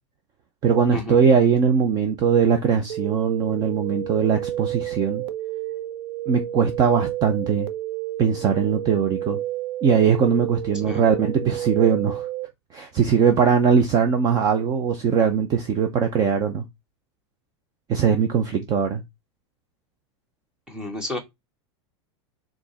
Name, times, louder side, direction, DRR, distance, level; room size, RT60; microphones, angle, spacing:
voice 1, 0.6-5.2 6.3-7.7 8.2-9.4 9.8-12.3 12.7-16.6 17.9-19.0, right 6 dB, 25° right, 0.7 m, -20 dB
sound 1, 2.9-12.5, right 13 dB, 65° right, 1.0 m, -31 dB
voice 2, 20.7-21.2, left 2 dB, 5° right, 1.4 m, -31 dB
5.0 x 3.8 x 5.6 m
supercardioid pair, 165°, 15 cm